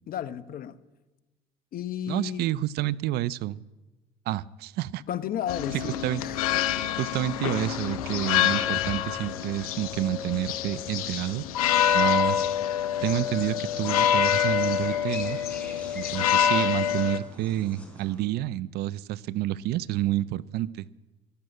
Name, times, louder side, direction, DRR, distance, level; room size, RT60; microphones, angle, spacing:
voice 1, 0.1-0.8 1.7-2.5 5.1-5.9 6.2-6.6, left 10 dB, 55° left, 0.9 m, -33 dB
voice 2, 2.1-3.6 4.3-5.0 5.7-6.2 7.0-11.4 11.9-12.4 13.0-15.4 15.9-20.9, right 14 dB, 65° right, 0.5 m, -29 dB
sound 1, 5.5-17.2, left 10 dB, 90° left, 0.7 m, -26 dB
sound 2, 12.9-18.2, left 1 dB, 5° left, 4.5 m, -45 dB
14.0 x 12.0 x 7.9 m
hypercardioid pair, 65°, 18 cm